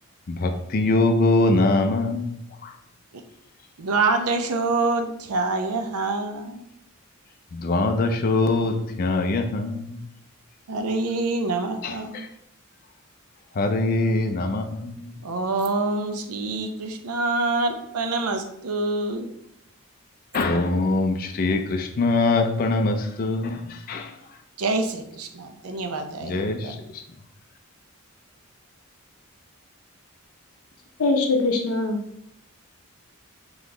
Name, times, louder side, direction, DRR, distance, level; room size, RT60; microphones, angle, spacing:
voice 1, 0.3-2.7 7.5-10.0 11.8-12.3 13.5-15.1 20.3-24.1 26.2-27.0, left 2 dB, 40° left, 5 dB, 0.4 m, -23 dB
voice 2, 3.8-6.7 10.7-12.3 15.2-19.3 24.6-26.7, right 3 dB, 90° right, 6 dB, 0.6 m, -26 dB
voice 3, 31.0-32.0, left 3 dB, 85° left, 3 dB, 0.6 m, -22 dB
3.9 x 3.0 x 3.7 m, 0.76 s
head